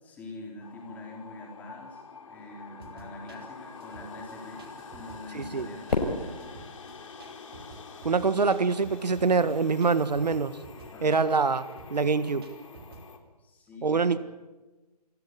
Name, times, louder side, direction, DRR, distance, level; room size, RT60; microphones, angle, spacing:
voice 1, 0.0-6.5 10.9-11.2 13.4-14.2, left 2 dB, 10° left, -1 dB, 4.1 m, -45 dB
sound 1, 0.6-13.2, left 5 dB, 50° left, 3.6 m, -47 dB
sound 2, 2.8-13.1, right 4 dB, 35° right, 3.4 m, -50 dB
voice 2, 5.3-5.7 8.0-10.5 11.0-12.5 13.8-14.2, right 4 dB, 90° right, 14 dB, 1.5 m, -25 dB
Fireworks, 5.9-8.2, left 2 dB, 80° left, 5.5 m, -33 dB
27.5 x 14.5 x 9.9 m, 1.2 s
hypercardioid pair, 165°, 21 cm